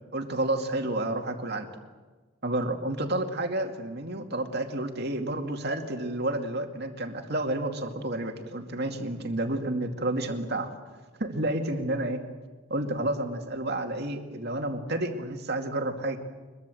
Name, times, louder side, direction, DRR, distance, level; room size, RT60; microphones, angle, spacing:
voice 1, 0.1-1.7 2.4-10.7 11.2-12.2 12.7-16.2, right 1 dB, 50° right, 4 dB, 2.4 m, -30 dB
23.5 x 22.5 x 7.9 m, 1.4 s
head